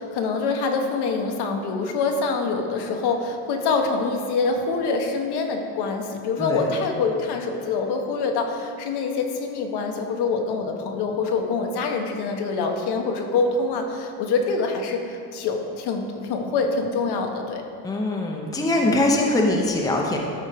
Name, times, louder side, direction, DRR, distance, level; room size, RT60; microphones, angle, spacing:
voice 1, 0.0-17.6, left 4 dB, 65° left, 3 dB, 1.2 m, -25 dB
voice 2, 17.8-20.2, left 2 dB, 10° left, 0 dB, 0.7 m, -22 dB
12.5 x 4.4 x 5.1 m, 2.4 s
cardioid pair, 145°, 42 cm